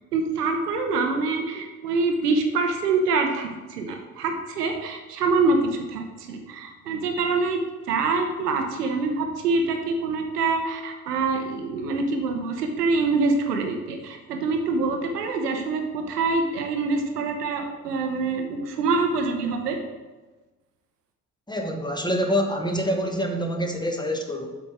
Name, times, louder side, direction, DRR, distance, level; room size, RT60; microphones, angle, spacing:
voice 1, 0.1-19.8, right 3 dB, 80° right, 4 dB, 0.9 m, -25 dB
voice 2, 21.5-24.5, equal, 10° left, 3 dB, 1.3 m, -26 dB
7.9 x 5.7 x 4.7 m, 1.2 s
figure-of-eight pair, 40°, 46 cm